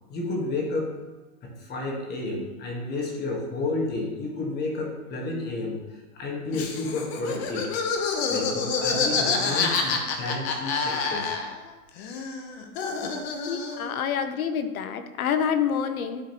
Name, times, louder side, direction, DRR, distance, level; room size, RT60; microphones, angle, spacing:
voice 1, 0.1-0.9 1.4-7.7 8.3-11.4, left 2 dB, 20° left, -1 dB, 1.5 m, -31 dB
Laughter, 6.5-11.7 12.0-13.9, left 5 dB, 45° left, 1.0 m, -28 dB
voice 2, 13.5-16.2, left 7 dB, 70° left, 9 dB, 0.9 m, -27 dB
11.0 x 3.8 x 3.0 m, 1.2 s
hypercardioid pair, 140°, 44 cm